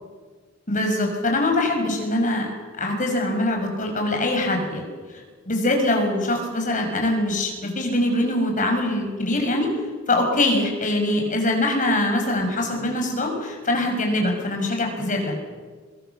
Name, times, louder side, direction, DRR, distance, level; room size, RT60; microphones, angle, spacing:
voice 1, 0.7-4.9 5.5-9.7 10.1-15.5, left 1 dB, 40° left, 3 dB, 5.8 m, -23 dB
23.5 x 22.0 x 7.0 m, 1.5 s
head